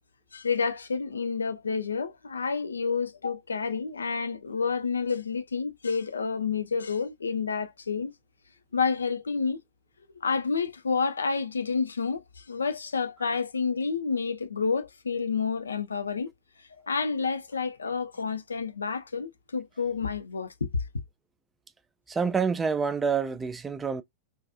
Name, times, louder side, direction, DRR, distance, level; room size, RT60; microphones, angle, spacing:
voice 1, 0.3-8.1 8.7-9.6 10.2-16.3 16.8-20.7, left 5 dB, 75° left, 0.3 m, -29 dB
voice 2, 22.1-24.0, right 5 dB, 15° right, 0.3 m, -27 dB
2.4 x 2.2 x 2.4 m
figure-of-eight pair, 90°, 0 cm